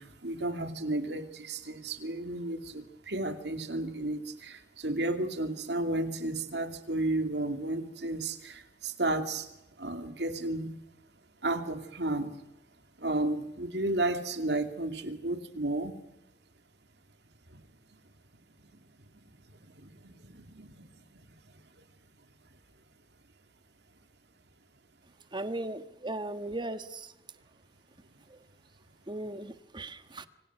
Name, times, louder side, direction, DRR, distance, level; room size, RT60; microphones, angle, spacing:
voice 1, 0.2-4.2 4.8-8.3 9.0-9.4 9.8-10.7 11.4-12.3 13.0-15.9, right 2 dB, 70° right, 7 dB, 2.7 m, -32 dB
voice 2, 25.3-27.1 28.3-28.4 29.1-30.3, right 2 dB, 25° right, 10 dB, 1.4 m, -37 dB
26.5 x 25.5 x 6.2 m, 0.90 s
head